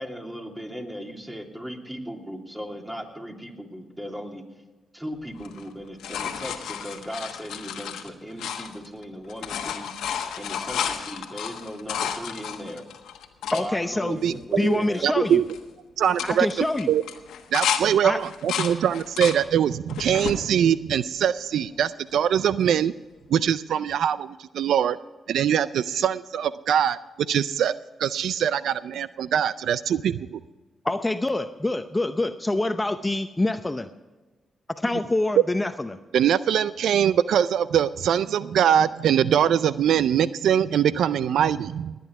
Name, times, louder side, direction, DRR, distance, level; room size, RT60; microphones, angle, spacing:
voice 1, 0.0-4.4 4.9-9.9 10.4-12.9 13.5-15.3, equal, 15° right, 2 dB, 2.9 m, -37 dB
sound 1, 5.4-9.0 9.3-13.6 14.2-14.3 14.5-15.0 15.3-15.6 16.0-17.8 18.2-19.4 19.9-20.4 21.0-21.8 23.4-23.5, left 8 dB, 85° left, 1.2 m, -32 dB
voice 2, 13.5-14.2 14.6-15.4 16.2-16.9 18.0-18.2 30.8-33.9 34.7-36.0, left 2 dB, 20° left, 9 dB, 0.7 m, -26 dB
voice 3, 14.2-15.4 16.0-17.0 17.5-22.9 23.3-25.0 25.3-27.0 27.3-27.7 28.0-30.4 36.1-42.0, right 9 dB, 80° right, 16 dB, 0.4 m, -23 dB
20.0 x 9.4 x 4.7 m, 1.2 s
supercardioid pair, 55°, 0 cm